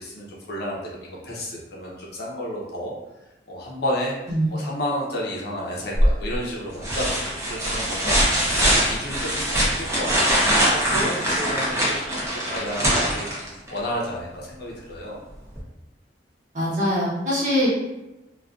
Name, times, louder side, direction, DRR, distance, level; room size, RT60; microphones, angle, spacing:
voice 1, 0.0-2.9 3.5-15.2, equal, 65° left, -3 dB, 0.6 m, -31 dB
sound 1, 6.0-6.4 6.8-13.8 15.6-15.7, equal, 15° right, 0.6 m, -22 dB
voice 2, 16.5-17.7, equal, 45° right, -8 dB, 1.0 m, -23 dB
2.4 x 2.3 x 2.4 m, 0.99 s
head